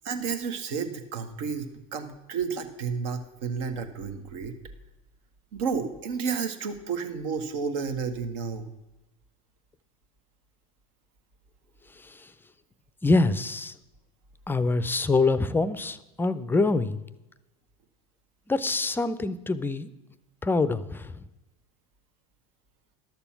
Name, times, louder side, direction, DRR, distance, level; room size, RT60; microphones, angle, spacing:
voice 1, 0.0-4.6 5.5-8.7, right 5 dB, 65° right, 8 dB, 1.3 m, -31 dB
voice 2, 13.0-13.7 14.5-17.0 18.5-19.9 20.4-21.2, left 3 dB, 10° left, 14 dB, 0.5 m, -25 dB
12.0 x 6.9 x 5.8 m, 0.98 s
hypercardioid pair, 85°, 19 cm